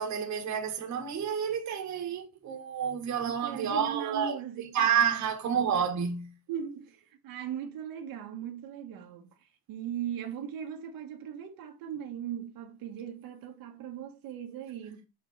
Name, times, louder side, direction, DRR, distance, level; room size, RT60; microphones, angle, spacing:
voice 1, 0.0-4.4 4.7-6.3, right 7 dB, 50° right, 1.6 m, -29 dB
voice 2, 3.2-5.1 6.5-15.0, right 9 dB, 75° right, 1.4 m, -39 dB
6.5 x 4.8 x 4.1 m
cardioid pair, 155°, 36 cm